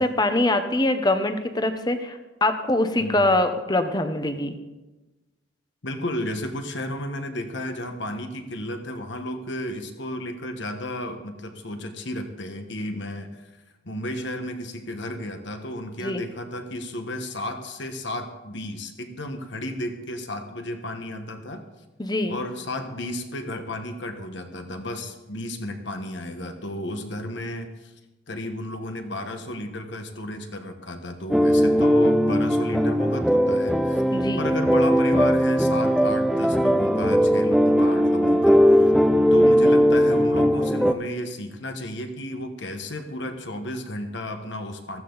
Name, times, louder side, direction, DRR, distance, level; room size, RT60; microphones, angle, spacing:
voice 1, 0.0-4.6 16.0-16.2 22.0-22.4 34.1-34.4, left 2 dB, 20° left, 8 dB, 0.8 m, -23 dB
voice 2, 3.0-3.3 5.8-13.5 13.8-21.6 22.3-27.9 28.3-38.9 39.3-45.0, left 1 dB, 60° left, 6 dB, 1.4 m, -33 dB
sound 1, 31.3-40.9, equal, ahead, 0.4 m, -19 dB
15.5 x 14.0 x 4.0 m, 1.1 s
head